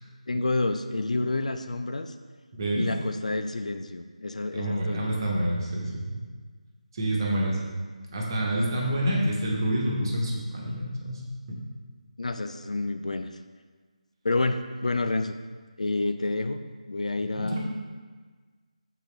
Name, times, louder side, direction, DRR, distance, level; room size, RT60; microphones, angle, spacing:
voice 1, 0.3-2.1 2.8-5.3 12.2-13.3 14.2-15.3 15.8-16.6 16.9-17.6, left 2 dB, 65° left, 8 dB, 0.4 m, -29 dB
voice 2, 2.5-2.9 4.5-6.2 6.9-7.6 8.1-11.2 11.5-11.6 17.3-17.6, right 1 dB, 35° right, -3 dB, 1.2 m, -28 dB
7.2 x 4.2 x 3.3 m, 1.4 s
figure-of-eight pair, 160°, 4 cm